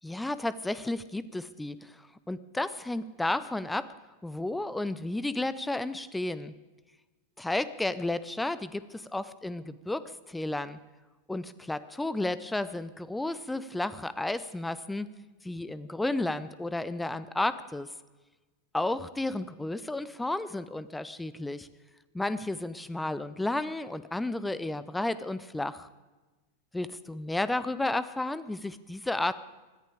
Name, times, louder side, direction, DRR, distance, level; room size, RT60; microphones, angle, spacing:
voice 1, 0.0-3.9 4.2-6.5 7.4-10.8 11.3-15.1 15.4-17.9 18.7-21.7 22.1-25.9 26.7-29.4, left 2 dB, 5° left, 15 dB, 0.7 m, -32 dB
20.5 x 14.0 x 5.0 m, 1.2 s
figure-of-eight pair, 90°, 0 cm